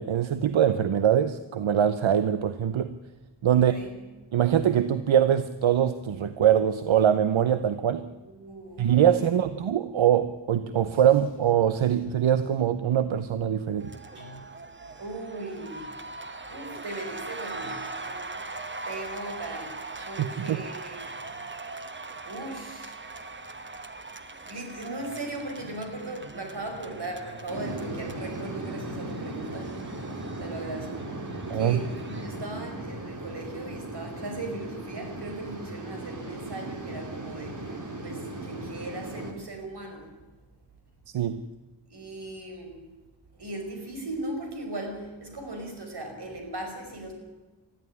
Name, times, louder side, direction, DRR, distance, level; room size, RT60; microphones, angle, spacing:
voice 1, 0.0-2.9 3.4-3.8 4.3-8.1 8.8-13.9 20.0-20.6 31.5-31.8 41.1-41.4, right 9 dB, 80° right, 12 dB, 0.9 m, -23 dB
voice 2, 3.5-4.0 8.2-8.9 9.2-9.4 14.0-14.6 15.0-15.9 16.5-18.4 18.8-19.8 20.0-21.6 22.2-23.0 23.6-23.8 24.5-29.7 30.4-31.1 31.5-37.7 38.0-40.1 41.9-42.8 43.4-47.1, right 2 dB, 60° right, 3 dB, 5.6 m, -38 dB
sound 1, 13.8-32.5, right 3 dB, 25° right, 1.2 m, -41 dB
sound 2, 27.5-39.3, right 2 dB, 40° right, 3.1 m, -37 dB
20.5 x 14.0 x 9.8 m, 1.2 s
wide cardioid pair, 125°, 46 cm